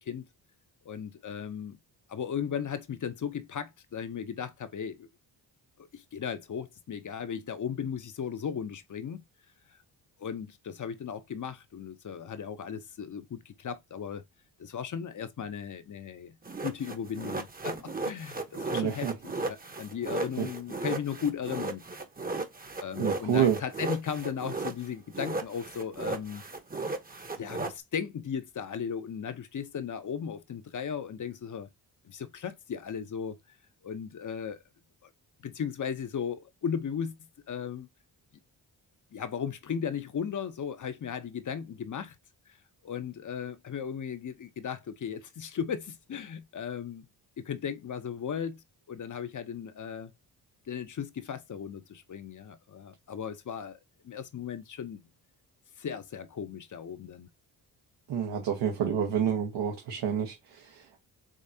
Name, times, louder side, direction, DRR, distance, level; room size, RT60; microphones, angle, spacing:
voice 1, 0.8-1.8 2.1-5.1 5.8-9.2 9.7-9.8 10.2-14.2 14.6-16.3 16.6-21.8 22.8-26.4 27.4-31.7 32.0-33.4 33.8-34.6 35.0-35.1 35.4-37.1 37.5-37.9 39.1-42.2 42.5-42.6 42.8-47.1 47.4-50.1 50.7-53.8 54.0-55.0 55.8-57.3, left 7 dB, 45° left, 0.8 m, -36 dB
sound 1, 16.4-24.9 25.1-27.7, right 3 dB, 20° right, 0.9 m, -35 dB
voice 2, 18.7-19.1 20.4-20.5 23.0-23.6 58.1-61.0, right 8 dB, 75° right, 1.2 m, -28 dB
5.1 x 3.2 x 2.7 m
cardioid pair, 75°, 42 cm